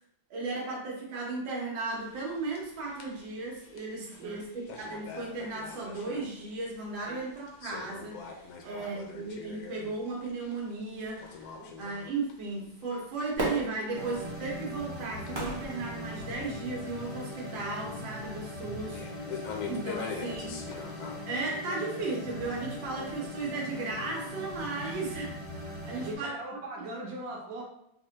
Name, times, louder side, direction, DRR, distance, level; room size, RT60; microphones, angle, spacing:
voice 1, 0.3-8.2 8.6-11.5 11.8-19.0 19.7-20.9 21.3-25.4 25.8-26.3, right 3 dB, 85° right, -3 dB, 1.7 m, -35 dB
sound 1, 1.9-21.2, left 6 dB, 75° left, 0.9 m, -46 dB
voice 2, 4.0-4.4 7.0-7.2 8.6-8.9 11.6-11.7 25.9-27.6, right 2 dB, 60° right, -2 dB, 1.2 m, -41 dB
Fireworks, 13.4-16.7 17.3-17.4, right 1 dB, 40° right, 0.3 m, -37 dB
sound 2, 13.9-26.2, left 1 dB, 55° left, 0.3 m, -40 dB
5.2 x 2.1 x 2.8 m, 0.78 s
omnidirectional pair, 2.1 m